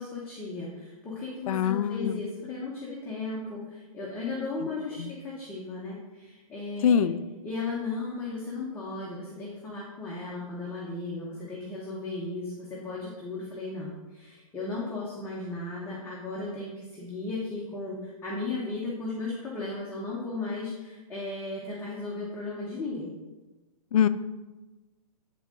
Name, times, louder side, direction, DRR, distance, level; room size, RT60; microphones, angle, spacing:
voice 1, 0.0-7.1 7.4-23.1, left 3 dB, 10° left, -6 dB, 1.0 m, -35 dB
voice 2, 1.5-2.2 5.0-5.1 6.8-7.2 23.9-24.1, left 8 dB, 70° left, 13 dB, 0.4 m, -24 dB
9.2 x 3.7 x 3.7 m, 1.2 s
hypercardioid pair, 145°, 19 cm